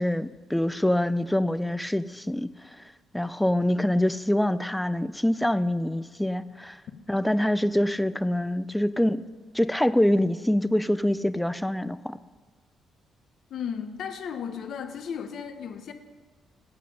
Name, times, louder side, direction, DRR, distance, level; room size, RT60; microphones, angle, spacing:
voice 1, 0.0-2.5 3.1-6.8 7.1-9.2 9.5-12.2, left 1 dB, 5° left, 15 dB, 0.3 m, -25 dB
voice 2, 13.5-15.9, left 7 dB, 65° left, 7 dB, 0.8 m, -35 dB
8.7 x 7.4 x 5.1 m, 1.4 s
cardioid pair, 90°, 0 cm